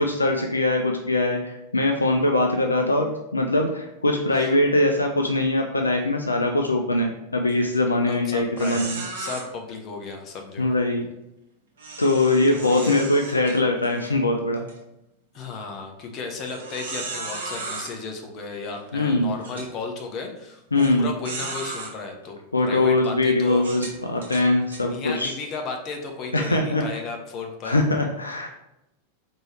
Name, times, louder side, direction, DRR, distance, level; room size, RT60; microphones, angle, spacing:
voice 1, 0.0-9.0 10.6-11.1 12.0-14.7 18.9-19.3 20.7-21.1 22.5-25.3 26.3-26.8 27.6-28.5, left 2 dB, 80° left, 3 dB, 0.4 m, -22 dB
sound 1, 7.5-7.8 8.1-8.2 8.6-9.4 11.8-14.1 14.6-14.7 15.3-15.4 16.4-17.9 18.8-18.9 19.4-19.7 20.8-20.9 21.2-21.9 22.6-22.7 23.6-24.8, right 3 dB, 65° right, 1.1 m, -35 dB
voice 2, 8.1-10.7 12.4-13.0 15.3-22.4 22.6-23.7 24.8-27.7, left 4 dB, 35° left, 3 dB, 0.8 m, -34 dB
4.4 x 3.0 x 3.2 m, 0.86 s
figure-of-eight pair, 90°, 0 cm